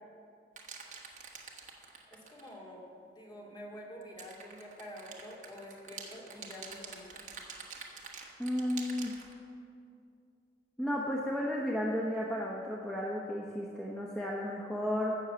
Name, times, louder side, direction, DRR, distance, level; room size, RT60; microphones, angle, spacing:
sound 1, 0.6-2.6 4.0-9.3, right 5 dB, 45° right, 1.4 m, -47 dB
voice 1, 2.1-7.3, equal, 25° left, -3 dB, 2.3 m, -48 dB
voice 2, 8.4-9.1 10.8-15.2, equal, 5° left, -4 dB, 0.9 m, -33 dB
15.5 x 6.4 x 6.9 m, 2.5 s
head